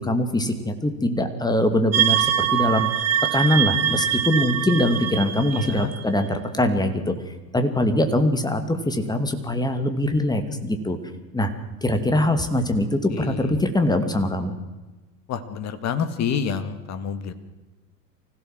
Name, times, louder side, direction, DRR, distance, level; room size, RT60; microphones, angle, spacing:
voice 1, 0.0-2.9 3.3-11.0 11.3-11.5 11.8-14.5, left 1 dB, 10° left, 8 dB, 2.5 m, -22 dB
sound 1, 1.9-6.3, right 10 dB, 30° right, 1.6 m, -23 dB
voice 2, 5.5-5.9 13.1-13.5 15.3-17.3, left 7 dB, 30° left, 11 dB, 2.1 m, -28 dB
25.0 x 16.0 x 7.7 m, 1.2 s
figure-of-eight pair, 85°, 50 cm